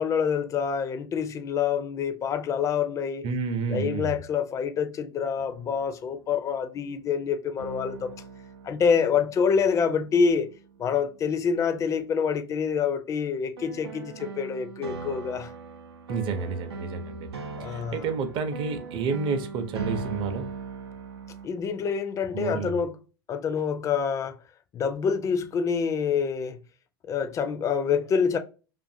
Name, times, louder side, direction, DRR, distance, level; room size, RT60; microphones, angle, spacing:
voice 1, 0.0-3.2 3.7-8.1 8.6-10.5 10.8-15.5 17.6-18.0 21.4-22.9 23.3-24.4 24.7-26.6 27.1-28.4, left 6 dB, 25° left, 0.4 m, -26 dB
voice 2, 3.2-4.2 16.1-17.3 17.6-20.5 22.3-22.8, right 5 dB, 40° right, 0.6 m, -30 dB
sound 1, 5.4-6.4 7.6-10.9 13.6-21.5, right 4 dB, 85° right, 0.5 m, -40 dB
2.6 x 2.5 x 2.5 m
hypercardioid pair, 95°, 13 cm